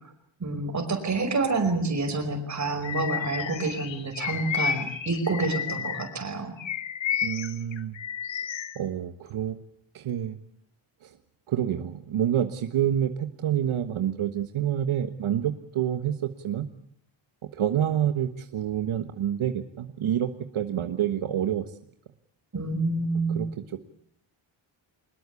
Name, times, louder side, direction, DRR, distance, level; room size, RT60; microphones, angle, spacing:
voice 1, 0.4-6.6 22.5-23.5, right 3 dB, 35° right, 5 dB, 5.4 m, -28 dB
Bird vocalization bird call bird song, 2.8-6.1 6.6-8.8, left 8 dB, 65° left, 1.6 m, -32 dB
voice 2, 7.2-8.0 8.7-9.6 9.9-10.4 11.0-11.2 11.5-16.7 17.5-21.7 23.3-23.8, right 10 dB, 75° right, 8 dB, 1.4 m, -28 dB
24.0 x 21.0 x 8.4 m, 0.69 s
wide cardioid pair, 155°, 49 cm